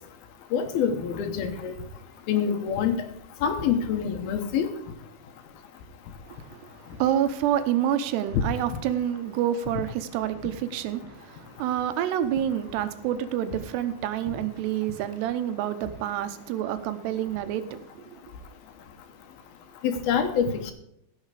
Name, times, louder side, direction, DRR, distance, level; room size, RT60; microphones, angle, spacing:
voice 1, 0.5-1.7 2.3-3.1 3.4-4.7 19.8-20.7, left 7 dB, 70° left, 2.8 m, -26 dB
voice 2, 6.3-18.2, right 10 dB, 90° right, 2.9 m, -28 dB
16.0 x 6.4 x 4.9 m
omnidirectional pair, 4.8 m